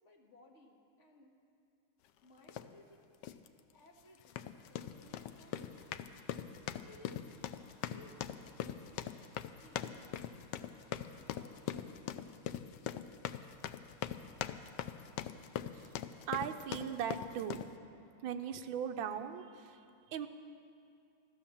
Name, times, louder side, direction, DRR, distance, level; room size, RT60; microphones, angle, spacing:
voice 1, 0.0-1.4 2.2-3.1 3.7-5.9 6.7-7.2 7.9-9.2 9.6-10.0 10.9-12.2, left 1 dB, 35° left, -1 dB, 1.8 m, -61 dB
sound 1, 2.5-2.7 3.2-3.5 4.2-17.7, left 10 dB, 80° left, 1.0 m, -42 dB
sound 2, 4.9-12.3, left 1 dB, 55° left, 5.0 m, -68 dB
voice 2, 16.3-17.6 18.2-20.3, right 8 dB, 70° right, 7 dB, 1.4 m, -39 dB
15.0 x 12.5 x 7.1 m, 2.5 s
omnidirectional pair, 2.4 m